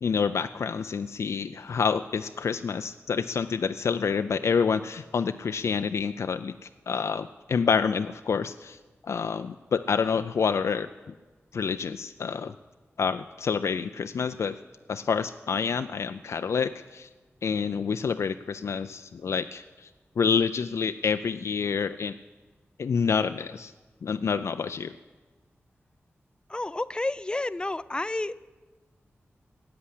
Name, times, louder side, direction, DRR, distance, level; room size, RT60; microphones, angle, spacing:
voice 1, 0.0-8.8 9.1-10.9 11.5-12.5 13.0-14.6 14.9-17.1 17.4-19.9 20.2-22.2 22.8-23.7 24.0-24.9, left 6 dB, 85° left, 9 dB, 0.4 m, -28 dB
voice 2, 26.5-28.4, left 2 dB, 20° left, 17 dB, 0.4 m, -30 dB
14.0 x 8.6 x 9.8 m, 1.3 s
wide cardioid pair, 115°, 5 cm